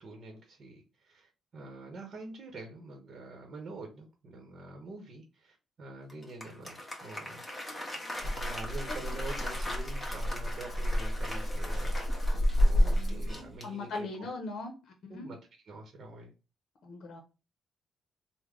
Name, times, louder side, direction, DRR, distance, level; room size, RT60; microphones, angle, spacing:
voice 1, 0.0-7.5 8.2-12.0 12.6-14.3 15.1-15.4 15.6-16.3, right 2 dB, 50° right, 2 dB, 0.9 m, -46 dB
Applause, 6.1-14.2, left 1 dB, 15° left, 1.2 m, -42 dB
Rattle (instrument), 8.2-13.6, equal, 30° left, 0.9 m, -29 dB
voice 2, 12.7-15.3 16.8-17.2, left 3 dB, 65° left, 4 dB, 0.7 m, -41 dB
3.5 x 2.1 x 3.6 m, 0.31 s
cardioid pair, 90°, 0 cm